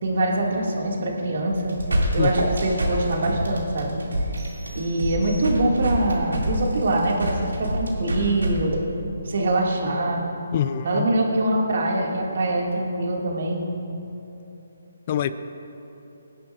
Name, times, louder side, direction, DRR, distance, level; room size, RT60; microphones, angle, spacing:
voice 1, 0.0-1.7 2.1-4.0 4.7-8.8 9.2-10.2 10.8-13.7, right 1 dB, 60° right, -1 dB, 2.1 m, -24 dB
sound 1, 1.5-8.5, right 1 dB, 85° right, 2.4 m, -26 dB
sound 2, 4.4-5.9, right 1 dB, 30° right, 2.2 m, -47 dB
voice 2, 10.5-11.1 15.1-15.3, left 9 dB, 35° left, 12 dB, 0.4 m, -25 dB
18.0 x 11.0 x 2.5 m, 3.0 s
figure-of-eight pair, 150°, 0 cm